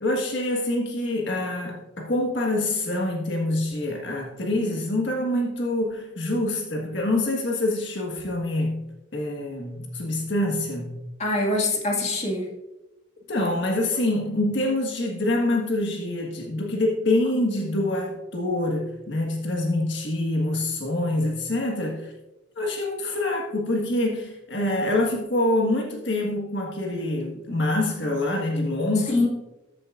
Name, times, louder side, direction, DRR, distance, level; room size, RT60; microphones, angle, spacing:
voice 1, 0.0-8.8 9.1-11.0 13.3-22.1 22.6-29.3, left 1 dB, 65° left, -1 dB, 1.5 m, -26 dB
voice 2, 11.2-12.5 13.4-13.5 29.1-29.3, left 2 dB, 35° left, -1 dB, 2.0 m, -24 dB
14.0 x 9.5 x 2.5 m, 1.0 s
head